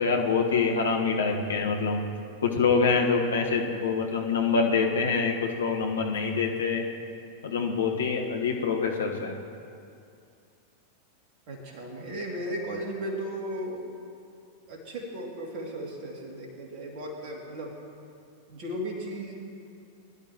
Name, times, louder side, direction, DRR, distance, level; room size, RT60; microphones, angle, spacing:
voice 1, 0.0-2.0 2.4-6.8 7.4-9.3, left 5 dB, 70° left, 1 dB, 1.4 m, -25 dB
voice 2, 11.5-13.9 14.7-17.7 18.5-19.3, equal, 40° right, -1 dB, 2.6 m, -36 dB
20.5 x 11.0 x 3.0 m, 2.5 s
figure-of-eight pair, 90°, 0 cm